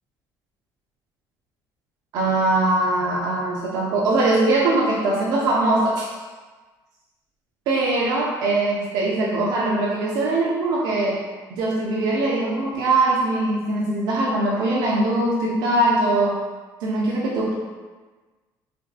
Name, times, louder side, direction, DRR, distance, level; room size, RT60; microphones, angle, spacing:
voice 1, 2.1-6.1 7.7-11.3 11.5-16.4 16.8-17.5, right 2 dB, 70° right, -3 dB, 0.4 m, -21 dB
3.2 x 2.5 x 2.3 m, 1.3 s
cardioid pair, 165°, 7 cm